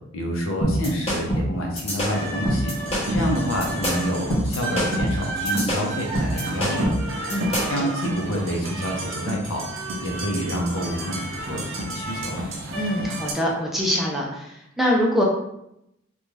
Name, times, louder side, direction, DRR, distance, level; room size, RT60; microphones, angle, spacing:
voice 1, 0.1-2.8 3.1-6.9 7.6-9.7 10.0-12.4, equal, 80° left, 1 dB, 0.6 m, -28 dB
sound 1, 0.6-7.8, equal, 30° left, 0.8 m, -25 dB
sound 2, 2.1-13.3, right 1 dB, 70° right, 0.5 m, -30 dB
voice 2, 7.3-7.7 12.8-15.2, equal, ahead, -3 dB, 0.3 m, -24 dB
2.6 x 2.2 x 3.1 m, 0.82 s
head